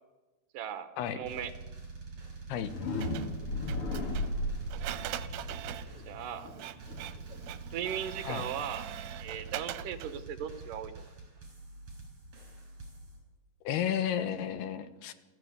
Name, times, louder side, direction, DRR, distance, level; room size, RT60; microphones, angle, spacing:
voice 1, 0.5-1.5 5.9-6.5 7.7-8.9 9.2-11.1, right 9 dB, 65° right, 10 dB, 2.8 m, -38 dB
sound 1, 1.2-6.5 6.8-13.2, right 3 dB, 40° right, 7.2 m, -46 dB
sound 2, 2.6-8.4, left 1 dB, 40° left, 2.7 m, -36 dB
Printer, 3.0-10.2, right 13 dB, 80° right, 2.9 m, -43 dB
voice 2, 13.6-15.1, left 9 dB, 80° left, 11 dB, 3.2 m, -32 dB
28.0 x 15.0 x 8.3 m, 1.2 s
omnidirectional pair, 4.6 m